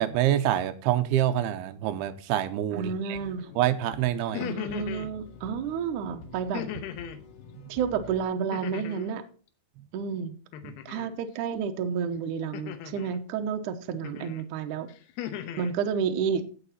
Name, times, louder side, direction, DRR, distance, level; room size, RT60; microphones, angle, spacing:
voice 1, 0.0-3.2 3.6-4.5, right 12 dB, 85° right, 10 dB, 2.7 m, -26 dB
voice 2, 2.7-3.5 4.4-6.6 7.7-9.2 9.9-10.4 10.9-14.9 15.6-16.5, right 6 dB, 70° right, 7 dB, 2.1 m, -30 dB
sound 1, 3.1-8.2, left 3 dB, 65° left, 2.5 m, -48 dB
sound 2, 4.2-5.1 6.5-7.2 8.5-9.2 10.5-11.1 12.5-13.2 14.0-14.4 14.9-15.7, left 10 dB, 90° left, 2.9 m, -37 dB
16.5 x 6.0 x 4.2 m, 0.38 s
omnidirectional pair, 4.5 m